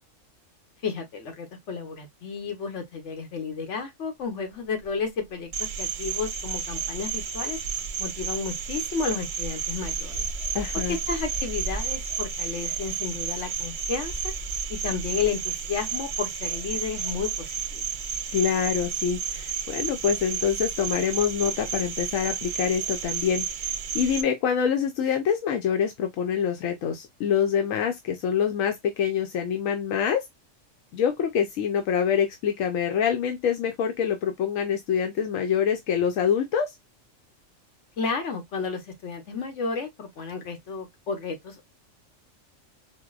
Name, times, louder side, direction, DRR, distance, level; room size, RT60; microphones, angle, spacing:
voice 1, 0.8-5.5 5.8-7.6 8.0-10.3 11.1-14.1 14.7-17.8 38.0-41.6, left 5 dB, 65° left, 1.3 m, -32 dB
sound 1, 4.7-5.6 5.8-19.4 19.6-19.9, right 1 dB, 40° left, 0.9 m, -40 dB
Cricket, 5.5-24.2, right 7 dB, 90° right, 1.0 m, -32 dB
voice 2, 10.5-11.0 18.3-30.2 30.9-36.7, left 8 dB, 85° left, 1.0 m, -25 dB
4.6 x 2.0 x 2.3 m
omnidirectional pair, 1.3 m